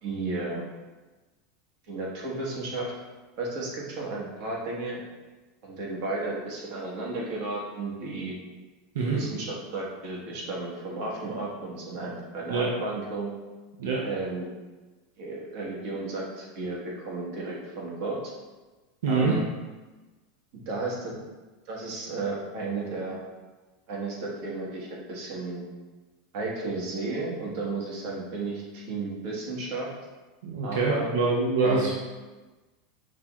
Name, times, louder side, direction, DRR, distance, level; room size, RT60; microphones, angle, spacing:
voice 1, 0.0-0.6 1.9-2.9 3.4-5.0 5.6-8.3 9.1-13.3 14.0-14.5 15.2-18.2 19.1-19.4 20.7-21.2 21.7-23.2 23.9-25.6 26.3-29.9 30.6-31.1 31.6-31.9, right 3 dB, 60° right, -3 dB, 1.3 m, -33 dB
voice 2, 19.0-19.3 30.4-31.9, right 4 dB, 90° right, -3 dB, 0.6 m, -25 dB
5.8 x 3.1 x 2.4 m, 1.2 s
supercardioid pair, 140°, 0 cm